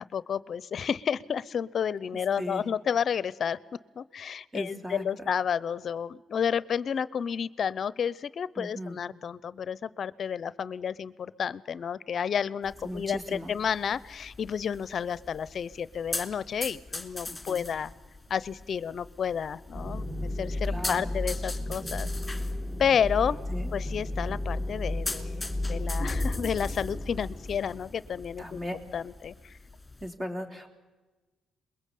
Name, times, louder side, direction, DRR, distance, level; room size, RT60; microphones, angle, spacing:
voice 1, 0.0-3.6 3.9-17.9 18.3-22.1 22.8-23.4 23.7-28.6 28.9-29.6, left 7 dB, 55° left, 19 dB, 0.8 m, -31 dB
voice 2, 4.5-5.3 8.6-9.0 12.8-13.5 17.3-17.6 20.6-21.1 23.5-23.7 28.4-28.8 30.0-30.7, equal, 20° right, 4 dB, 3.7 m, -37 dB
sound 1, 12.6-30.1, left 2 dB, 15° left, 3.0 m, -42 dB
sound 2, 19.7-29.0, left 1 dB, 5° right, 2.2 m, -33 dB
28.0 x 22.0 x 8.5 m, 1.2 s
cardioid pair, 90°, 0 cm